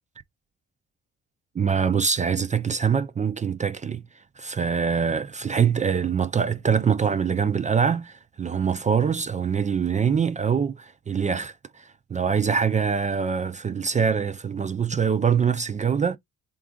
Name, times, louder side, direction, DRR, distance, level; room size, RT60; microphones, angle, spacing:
voice 1, 1.6-4.0 4.4-11.5 12.1-16.2, right 6 dB, 25° right, 0.4 m, -24 dB
3.6 x 2.4 x 3.6 m
cardioid pair, 90°, 30 cm